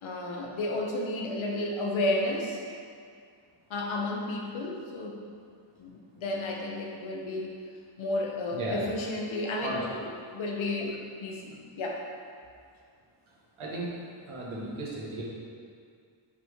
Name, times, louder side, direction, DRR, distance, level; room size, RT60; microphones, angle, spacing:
voice 1, 0.0-2.6 3.7-5.2 5.8-7.5 8.0-12.0, left 2 dB, 75° left, 0 dB, 1.0 m, -32 dB
voice 2, 13.6-13.9 14.3-15.2, right 2 dB, 85° right, -5 dB, 1.6 m, -35 dB
5.9 x 3.9 x 4.7 m, 2.2 s
wide cardioid pair, 130°, 48 cm